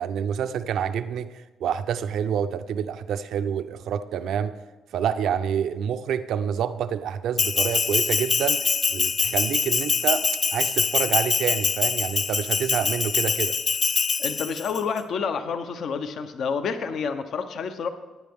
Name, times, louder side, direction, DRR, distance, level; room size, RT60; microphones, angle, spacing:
voice 1, 0.0-1.3 1.6-4.6 4.9-13.6, right 8 dB, 75° right, 11 dB, 0.6 m, -27 dB
Bell, 7.4-14.8, left 5 dB, 40° left, 0.5 m, -24 dB
voice 2, 14.2-17.9, left 6 dB, 65° left, 8 dB, 0.9 m, -29 dB
16.5 x 9.5 x 3.7 m, 1.2 s
cardioid pair, 90°, 0 cm